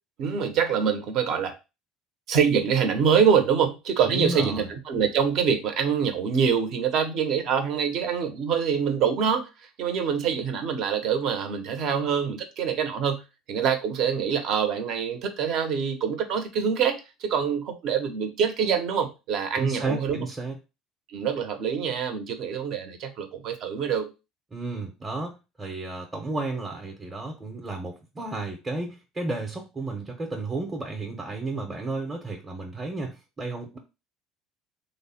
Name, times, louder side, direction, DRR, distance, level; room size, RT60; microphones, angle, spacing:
voice 1, 0.2-1.6 2.3-9.5 9.8-13.2 13.5-20.3 21.1-24.1, right 7 dB, 60° right, 0.7 m, -25 dB
voice 2, 4.0-4.6 19.6-20.6 24.5-33.8, right 2 dB, 15° right, 0.7 m, -32 dB
3.1 x 2.1 x 4.1 m
supercardioid pair, 110°, 0 cm